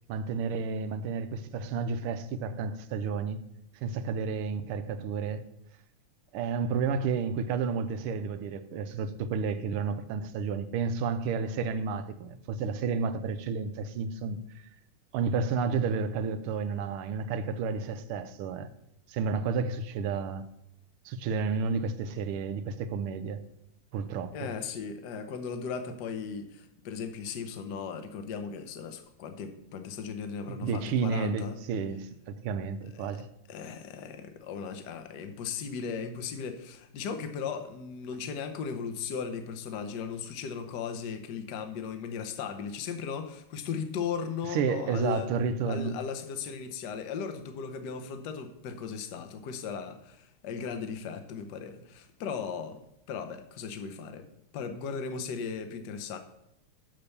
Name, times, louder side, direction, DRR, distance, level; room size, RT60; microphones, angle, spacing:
voice 1, 0.1-3.4 3.8-5.4 6.3-14.4 15.1-18.7 19.1-20.5 21.0-23.4 23.9-24.5 30.6-33.3 44.5-46.0, right 5 dB, 85° right, 1.6 m, -31 dB
voice 2, 24.3-31.6 32.9-33.1 33.5-45.3 45.7-52.8 53.1-54.3 54.5-56.2, left 6 dB, 60° left, 1.3 m, -37 dB
6.7 x 6.6 x 6.9 m
omnidirectional pair, 2.4 m